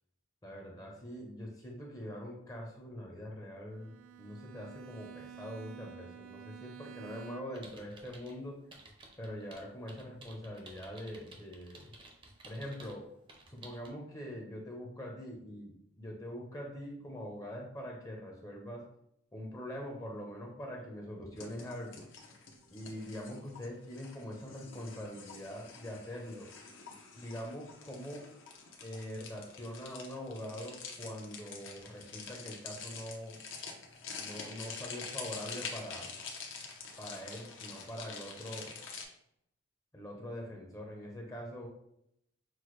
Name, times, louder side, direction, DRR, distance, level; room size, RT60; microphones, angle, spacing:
voice 1, 0.4-8.6 9.2-11.9 12.5-13.1 13.5-18.9 19.3-22.1 22.7-26.5 27.2-28.3 28.8-33.4 34.2-36.2 37.0-38.8 39.9-41.7, equal, 15° left, -1 dB, 0.6 m, -43 dB
Bowed string instrument, 3.7-7.8, right 9 dB, 70° right, 0.3 m, -50 dB
sound 1, 7.5-8.3 8.7-13.0 13.3-13.9, right 2 dB, 25° right, 0.6 m, -54 dB
sound 2, 21.4-39.0, left 5 dB, 65° left, 0.8 m, -47 dB
6.0 x 2.2 x 3.1 m, 0.75 s
head